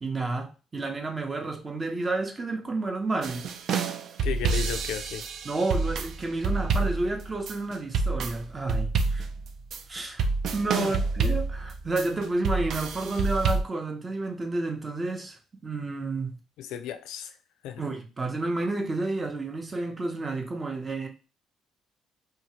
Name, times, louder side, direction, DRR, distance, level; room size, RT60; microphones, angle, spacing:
voice 1, 0.0-3.5 5.4-9.3 9.9-10.3 10.5-16.3 17.8-21.1, right 2 dB, 30° right, 0.7 m, -30 dB
sound 1, 3.2-13.6, right 4 dB, 65° right, 0.3 m, -28 dB
voice 2, 4.2-5.2 10.7-10.9 16.6-17.3 17.6-17.8, left 10 dB, 85° left, 0.3 m, -34 dB
2.7 x 2.3 x 2.9 m
supercardioid pair, 75°, 0 cm